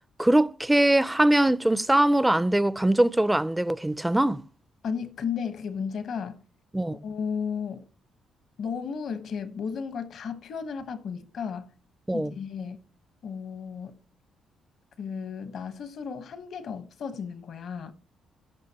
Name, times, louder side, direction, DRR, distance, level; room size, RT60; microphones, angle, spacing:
voice 1, 0.2-4.4 6.7-7.0 12.1-12.3, right 1 dB, 10° right, 0.4 m, -22 dB
voice 2, 4.8-6.4 6.9-7.9 8.6-11.7 12.1-12.8 13.2-14.0 15.0-17.9, left 6 dB, 65° left, 1.1 m, -34 dB
15.5 x 5.9 x 2.9 m
cardioid pair, 90°, 0 cm